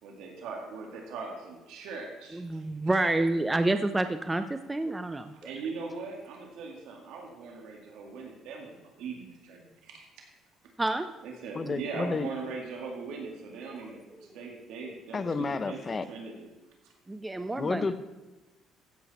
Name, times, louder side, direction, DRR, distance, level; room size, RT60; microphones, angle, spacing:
voice 1, 0.0-2.7 5.4-10.1 11.2-16.5 16.8-16.9, right 4 dB, 80° right, 0 dB, 2.1 m, -40 dB
voice 2, 2.3-5.3 10.8-11.1 14.2-14.3 17.1-17.9, right 2 dB, 15° right, 9 dB, 0.5 m, -28 dB
voice 3, 11.5-12.3 15.1-16.1 17.6-17.9, left 4 dB, 30° left, 12 dB, 0.7 m, -31 dB
15.5 x 7.8 x 4.2 m, 1.2 s
cardioid pair, 110°, 0 cm